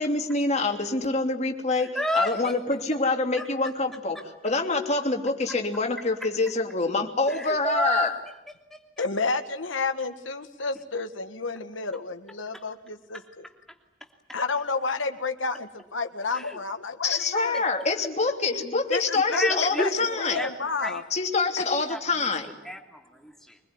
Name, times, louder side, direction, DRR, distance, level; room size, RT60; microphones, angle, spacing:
voice 1, 0.0-4.2 4.4-8.1 17.0-20.4 21.1-22.6, left 3 dB, 35° left, 3 dB, 3.1 m, -26 dB
voice 2, 1.7-2.5 3.4-3.5 4.1-4.2 5.5-5.6 6.2-6.3 7.3-8.1 8.7-8.8 12.5-12.6 13.1-13.2 16.3-16.6 17.1-17.6 19.1-20.5 20.8-21.0 21.9-23.6, left 1 dB, ahead, 3 dB, 2.9 m, -31 dB
voice 3, 9.0-13.5 14.3-17.7 18.9-19.9 20.2-21.0 21.6-21.7, left 4 dB, 85° left, 7 dB, 1.9 m, -30 dB
25.0 x 21.5 x 9.7 m, 0.88 s
head